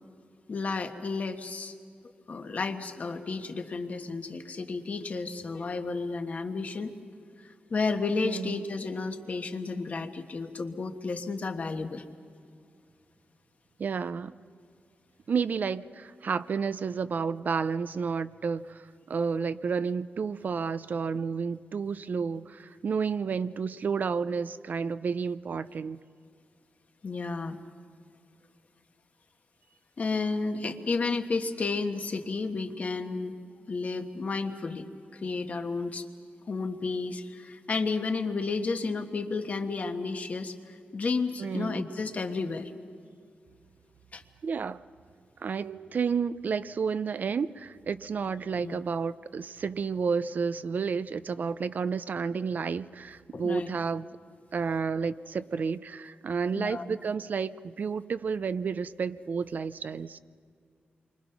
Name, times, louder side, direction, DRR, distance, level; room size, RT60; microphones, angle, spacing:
voice 1, 0.5-1.7 2.3-6.9 7.4-12.0 27.0-27.6 30.0-33.3 33.7-34.9 35.1-36.0 36.5-42.7 44.1-44.2 48.6-48.8 53.3-53.7 56.5-56.8, left 4 dB, 45° left, 6 dB, 1.4 m, -32 dB
voice 2, 8.2-8.6 13.8-14.4 15.3-26.0 41.4-41.9 44.4-44.8 45.4-54.1 54.5-60.2, right 5 dB, 50° right, 14 dB, 0.5 m, -31 dB
28.5 x 24.0 x 5.9 m, 2.3 s
wide cardioid pair, 150°, 4 cm